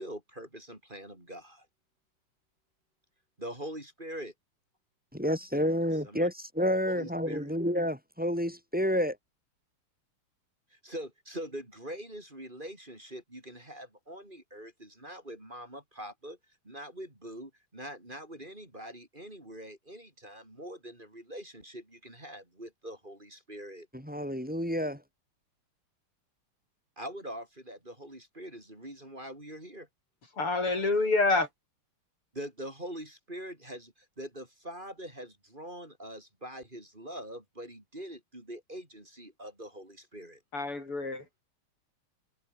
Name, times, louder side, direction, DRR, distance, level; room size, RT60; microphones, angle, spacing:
voice 1, 0.0-1.7 3.4-4.3 6.0-6.3 6.9-7.5 10.7-16.4 16.6-23.9 27.0-29.9 32.3-40.4, right 1 dB, 20° right, 5.6 m, -43 dB
voice 2, 5.1-9.2 23.9-25.0, equal, 5° right, 7.3 m, -29 dB
voice 3, 30.4-31.5 40.5-41.2, left 3 dB, 90° left, 7.5 m, -27 dB
omnidirectional pair, 2.4 m